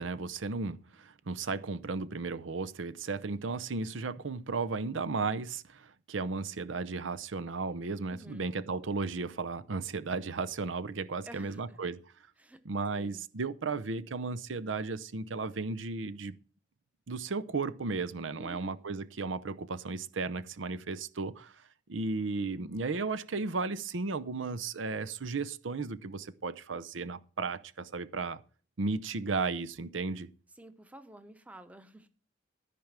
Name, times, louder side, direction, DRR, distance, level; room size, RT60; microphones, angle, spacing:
voice 1, 0.0-12.0 12.6-16.4 17.1-21.5 21.9-28.4 28.8-30.3, right 4 dB, 90° right, 0.7 m, -35 dB
voice 2, 8.1-8.5 11.2-11.8 12.4-12.6 12.9-13.3 18.4-18.7 30.5-32.1, right 1 dB, 5° right, 0.8 m, -51 dB
14.0 x 5.1 x 7.4 m
head